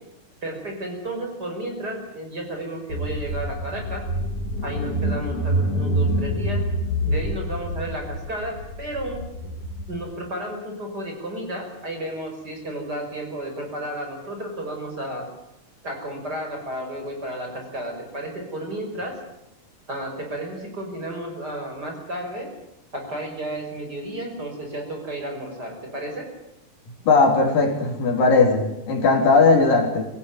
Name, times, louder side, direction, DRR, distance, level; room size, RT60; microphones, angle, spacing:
voice 1, 0.4-4.0 4.6-6.6 7.0-9.2 9.9-15.3 15.8-19.2 19.9-22.5 22.9-26.3, right 1 dB, 25° right, 3 dB, 6.0 m, -32 dB
Car / Engine, 2.9-9.9, equal, 45° left, 3.2 m, -26 dB
voice 2, 27.1-30.1, left 3 dB, 80° left, 2 dB, 5.4 m, -18 dB
24.5 x 16.0 x 9.5 m, 0.88 s
omnidirectional pair, 4.0 m